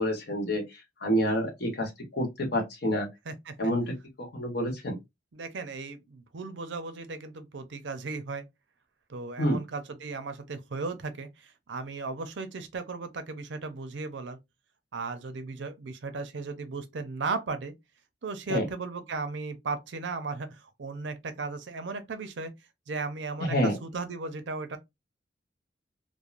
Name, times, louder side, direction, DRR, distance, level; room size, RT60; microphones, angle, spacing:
voice 1, 0.0-3.1 3.6-5.0 9.4-9.6 18.5-18.6 23.4-23.7, equal, 60° left, 1.0 m, -28 dB
voice 2, 3.3-3.7 5.3-8.4 9.1-14.4 14.9-17.7 18.2-22.5 22.9-24.8, right 4 dB, 70° right, 0.5 m, -36 dB
3.1 x 2.1 x 2.4 m
head